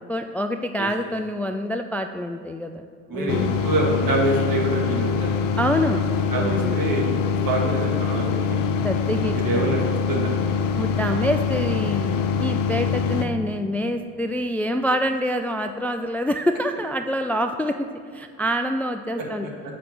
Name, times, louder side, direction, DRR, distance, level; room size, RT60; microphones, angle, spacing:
voice 1, 0.1-2.9 3.1-3.5 5.6-6.0 6.4-6.8 8.8-9.7 10.8-17.9 18.1-19.5, equal, 5° left, 6 dB, 0.3 m, -26 dB
voice 2, 3.1-5.3 6.3-7.1 7.5-8.6 9.3-9.8 10.1-10.3 11.1-11.2 19.2-19.5, right 2 dB, 55° right, -1 dB, 1.9 m, -25 dB
sound 1, 3.3-13.3, left 6 dB, 55° left, 0.7 m, -24 dB
7.5 x 5.1 x 5.9 m, 2.3 s
hypercardioid pair, 50°, 40 cm